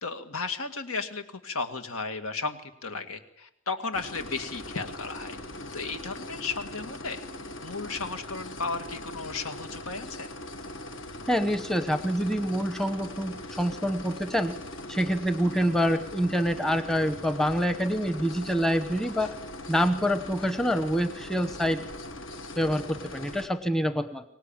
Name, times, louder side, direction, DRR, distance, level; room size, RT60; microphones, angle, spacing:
voice 1, 0.0-5.4 5.7-7.2 7.6-10.3, left 4 dB, 80° left, 7 dB, 2.2 m, -34 dB
sound 1, 3.9-23.5, left 1 dB, 60° left, 1.6 m, -41 dB
voice 2, 11.3-14.6 14.9-19.3 19.7-21.8 22.6-24.2, equal, ahead, 9 dB, 1.0 m, -26 dB
24.0 x 19.0 x 8.9 m, 0.81 s
head